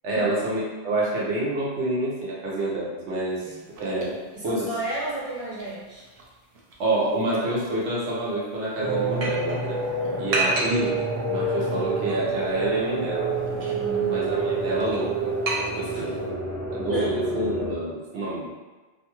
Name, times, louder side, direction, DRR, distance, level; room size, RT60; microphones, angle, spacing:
voice 1, 0.0-4.7 6.8-9.8 10.2-11.0 11.3-13.4 14.1-15.2 15.8-16.2 16.7-18.5, right 1 dB, 80° right, -5 dB, 1.1 m, -27 dB
sound 1, 3.3-16.3, right 2 dB, 65° right, 0.3 m, -35 dB
voice 2, 4.3-6.1 10.0-10.3 13.7-14.3 15.9-16.0 16.9-17.1, right 1 dB, 35° right, -7 dB, 0.7 m, -33 dB
sound 2, 8.8-17.7, right 3 dB, 5° left, 0.5 m, -28 dB
2.6 x 2.3 x 2.9 m, 1.3 s
omnidirectional pair, 1.2 m